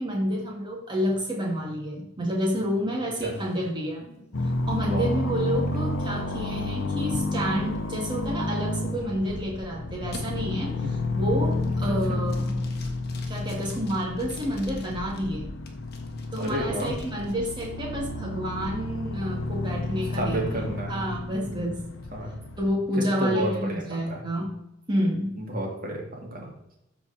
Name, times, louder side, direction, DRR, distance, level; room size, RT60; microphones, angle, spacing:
voice 1, 0.0-4.0 4.4-12.7 13.3-15.5 16.3-20.6 20.9-21.8 22.6-24.5 24.9-25.3, equal, 25° right, -2 dB, 2.4 m, -29 dB
sound 1, 3.3-9.6 10.1-10.2 10.7-11.1 11.5-11.9 12.3-15.2 15.7-17.7, left 2 dB, 50° left, 1.4 m, -46 dB
sound 2, 4.3-22.7, left 2 dB, 75° left, 0.9 m, -31 dB
voice 2, 4.8-5.2 10.8-10.9 11.8-12.2 16.4-16.9 20.1-21.2 21.4-21.7 22.1-22.3 22.9-24.2 25.4-26.5, equal, 45° right, -1 dB, 2.4 m, -31 dB
13.5 x 4.7 x 4.3 m, 0.85 s
head